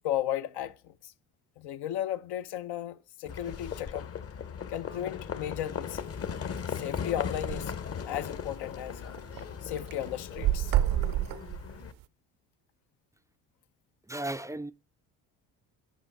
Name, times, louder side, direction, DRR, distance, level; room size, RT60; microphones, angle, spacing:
voice 1, 0.0-1.1 1.6-4.1 4.7-6.0 6.6-7.8 8.1-9.2 9.6-10.7, left 11 dB, 75° left, 0.7 m, -35 dB
Livestock farm animals working animals, 3.3-11.9, left 7 dB, 35° left, 0.8 m, -38 dB
sound 1, 5.9-6.2 6.6-6.7 6.9-7.0 7.3-7.7 8.2-8.3 8.7-9.5 9.8-12.0, right 12 dB, 55° right, 0.6 m, -28 dB
voice 2, 14.1-14.7, right 1 dB, 10° right, 0.3 m, -35 dB
10.5 x 5.3 x 4.6 m
supercardioid pair, 80°, 40 cm